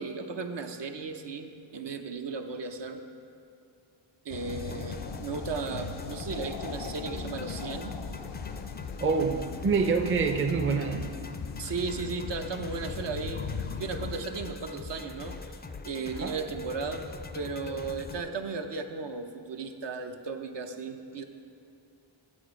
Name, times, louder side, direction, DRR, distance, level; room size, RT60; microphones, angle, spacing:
voice 1, 0.0-3.0 4.2-8.0 11.6-13.5 13.8-15.4 15.8-17.1 17.3-21.2, right 4 dB, 65° right, 5 dB, 0.7 m, -35 dB
sound 1, 4.3-14.3, left 6 dB, 70° left, 0.6 m, -39 dB
sound 2, 4.5-18.2, left 4 dB, 25° left, 0.4 m, -42 dB
voice 2, 9.0-11.1 16.1-16.4, right 5 dB, 30° right, 5 dB, 0.5 m, -26 dB
8.8 x 8.0 x 5.0 m, 2.5 s
wide cardioid pair, 95°, 45 cm